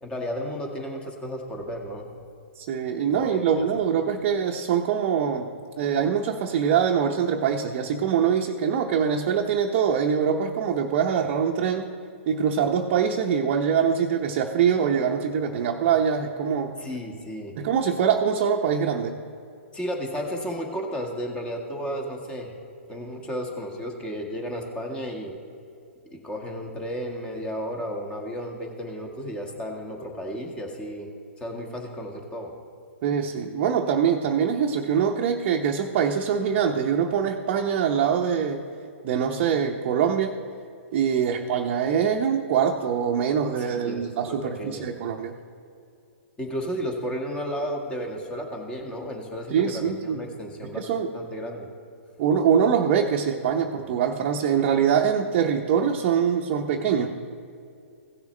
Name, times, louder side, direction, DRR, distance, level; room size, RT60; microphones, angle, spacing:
voice 1, 0.0-2.1 3.0-3.8 16.8-17.5 19.7-22.5 22.9-25.3 26.1-31.1 31.4-32.5 43.7-44.9 46.4-50.8 51.1-51.7, equal, 15° left, 1 dB, 1.5 m, -33 dB
voice 2, 2.6-5.5 5.8-11.9 12.3-16.7 17.6-19.1 33.0-38.6 39.0-40.3 40.9-45.3 49.5-50.2 50.7-51.1 52.2-57.1, right 7 dB, 45° right, 1 dB, 0.7 m, -23 dB
16.5 x 7.0 x 3.2 m, 2.4 s
hypercardioid pair, 130°, 7 cm